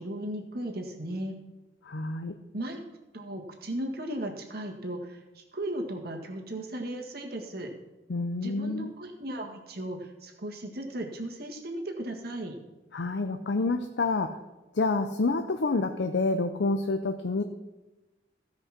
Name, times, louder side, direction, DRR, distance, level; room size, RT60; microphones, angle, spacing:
voice 1, 0.0-1.4 2.5-2.8 3.1-7.7 8.4-12.5, right 1 dB, 55° right, 2 dB, 1.7 m, -36 dB
voice 2, 1.8-2.3 8.1-8.9 12.9-14.4 14.7-17.4, left 3 dB, 70° left, 7 dB, 0.6 m, -28 dB
15.5 x 5.3 x 6.0 m, 1.1 s
head